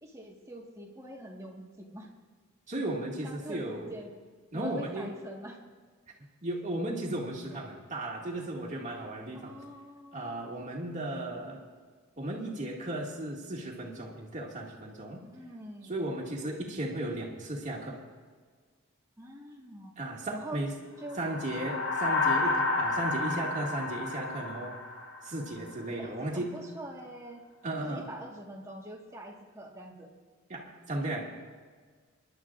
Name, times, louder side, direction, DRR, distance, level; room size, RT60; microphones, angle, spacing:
voice 1, 0.0-2.1 3.2-4.1 4.5-5.6 9.3-10.6 15.3-15.9 19.2-19.9 20.3-20.6 21.0-21.2 26.0-27.4 27.8-30.1, right 1 dB, 15° right, -1 dB, 1.6 m, -44 dB
voice 2, 2.7-4.0 4.5-5.1 6.4-9.5 10.1-11.6 12.2-15.3 15.8-18.0 20.0-20.7 21.2-24.8 25.2-26.6 27.6-28.1 30.5-31.2, right 1 dB, 35° right, -2 dB, 2.1 m, -35 dB
sound 1, 21.1-25.7, left 3 dB, 55° left, 1.7 m, -31 dB
25.5 x 11.5 x 2.5 m, 1.5 s
head